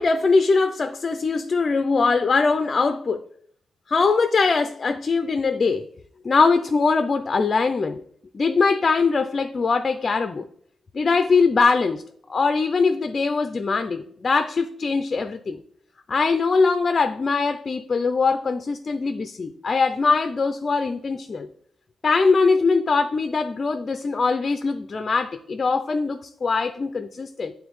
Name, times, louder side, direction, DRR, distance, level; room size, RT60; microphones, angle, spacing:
voice 1, 0.0-3.2 3.9-5.9 6.2-8.0 8.3-10.5 10.9-12.0 12.3-15.6 16.1-21.5 22.0-27.5, left 4 dB, 40° left, 0.4 m, -22 dB
9.2 x 3.5 x 3.1 m
wide cardioid pair, 120°, 0 cm